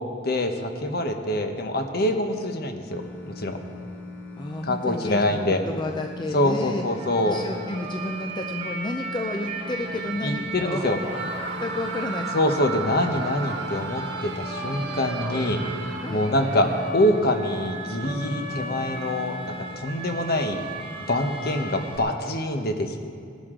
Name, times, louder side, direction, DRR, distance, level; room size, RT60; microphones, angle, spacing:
voice 1, 0.2-3.6 4.6-5.6 6.3-7.4 10.2-11.0 12.3-15.6 16.1-20.6 21.1-23.0, left 1 dB, 55° left, 5 dB, 1.0 m, -25 dB
sound 1, 2.9-19.8, left 3 dB, 10° left, 1.2 m, -40 dB
voice 2, 4.4-5.4 5.6-6.8 7.3-10.9 11.6-12.3 16.0-16.2, left 2 dB, 25° left, 3 dB, 0.5 m, -31 dB
sound 2, 6.9-22.0, right 3 dB, 30° right, 1.3 m, -36 dB
Screaming, 11.0-17.3, right 4 dB, 65° right, 0.8 m, -37 dB
18.5 x 11.5 x 3.8 m, 2.3 s
head